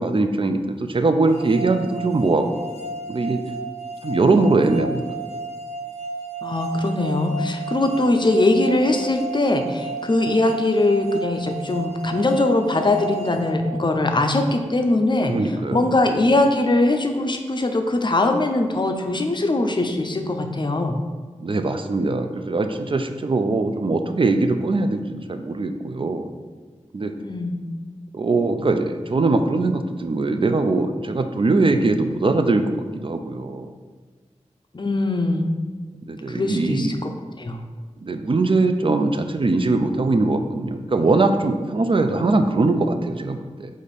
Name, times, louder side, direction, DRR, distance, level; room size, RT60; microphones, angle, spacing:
voice 1, 0.0-2.6 3.1-3.4 4.0-5.0 15.3-15.8 21.4-26.3 26.9-27.1 28.1-32.7 32.9-33.7 36.1-36.9 38.0-43.7, right 3 dB, 45° right, 7 dB, 0.4 m, -21 dB
sound 1, 1.3-14.3, right 3 dB, 60° right, 0.9 m, -33 dB
voice 2, 6.4-15.3 15.7-21.0 27.2-27.6 34.7-35.5 36.3-37.1 37.4-37.6, left 2 dB, 40° left, 5 dB, 0.5 m, -21 dB
5.0 x 2.5 x 4.0 m, 1.4 s
wide cardioid pair, 60°, 12 cm